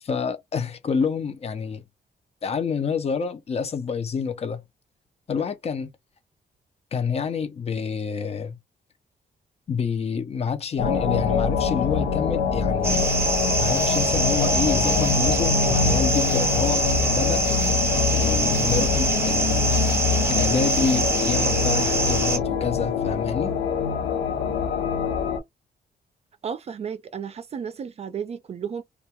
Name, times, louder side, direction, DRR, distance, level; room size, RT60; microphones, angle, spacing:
voice 1, 0.0-1.8 2.4-4.6 5.3-5.9 6.9-8.6 9.7-13.1 13.6-17.5 18.1-19.8 20.3-23.6, left 6 dB, 35° left, 0.5 m, -28 dB
sound 1, 10.8-25.4, left 6 dB, 90° left, 0.7 m, -24 dB
sound 2, 12.8-22.4, right 3 dB, 15° right, 0.7 m, -25 dB
voice 2, 26.4-28.8, right 7 dB, 40° right, 0.4 m, -33 dB
2.3 x 2.2 x 2.8 m
cardioid pair, 135°, 17 cm